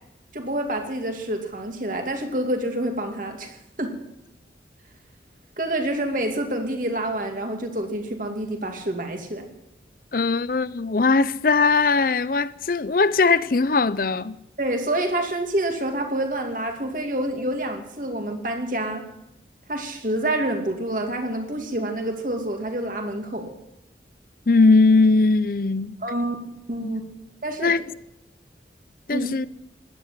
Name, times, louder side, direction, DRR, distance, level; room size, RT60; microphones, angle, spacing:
voice 1, 0.3-3.9 5.6-9.5 14.6-19.1 19.7-23.5 26.0-26.4 26.7-27.0 27.4-27.7 29.1-29.3, right 1 dB, 50° right, 2.6 m, -27 dB
voice 2, 10.1-14.4 24.5-26.0 26.8-26.9 27.6-27.8 29.1-29.5, left 3 dB, 55° left, 0.6 m, -19 dB
16.0 x 11.5 x 7.5 m
head